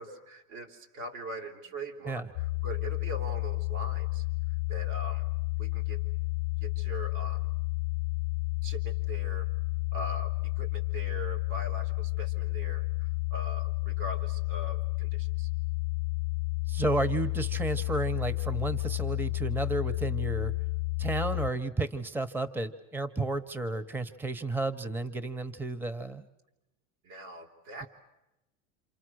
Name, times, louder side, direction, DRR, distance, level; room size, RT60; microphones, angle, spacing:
voice 1, 0.0-4.2 4.7-5.3 5.6-6.0 6.6-7.5 8.6-9.5 9.9-15.5 27.0-27.9, right 1 dB, 80° right, 2 dB, 3.7 m, -42 dB
sound 1, 2.4-21.5, left 25 dB, 70° left, 0.8 m, -31 dB
voice 2, 16.7-20.5 21.0-26.2, right 2 dB, 5° right, 15 dB, 0.8 m, -32 dB
28.0 x 26.5 x 6.4 m, 0.95 s
supercardioid pair, 115°, 40 cm